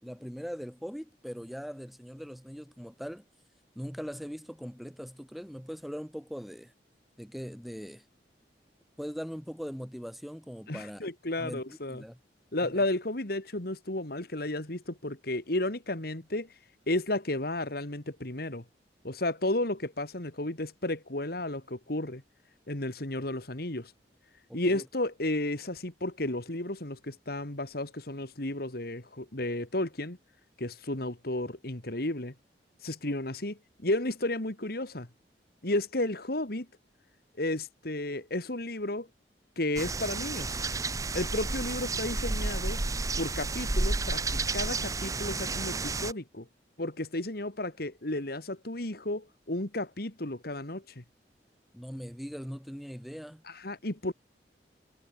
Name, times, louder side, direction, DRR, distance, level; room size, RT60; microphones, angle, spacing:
voice 1, 0.0-3.2 3.8-6.7 7.2-8.0 9.0-11.0 11.4-12.2 12.6-12.8 24.5-24.8 51.7-53.4, equal, ahead, 3.8 m, -41 dB
voice 2, 10.7-12.0 12.5-16.5 16.9-18.6 19.0-22.2 22.7-23.9 24.5-30.2 30.6-32.3 32.8-35.1 35.6-36.7 37.4-39.1 39.6-40.6 41.1-42.8 43.2-46.5 46.8-51.0 53.5-54.1, left 1 dB, 60° left, 2.7 m, -33 dB
sound 1, 39.8-46.1, right 3 dB, 20° right, 0.6 m, -31 dB
head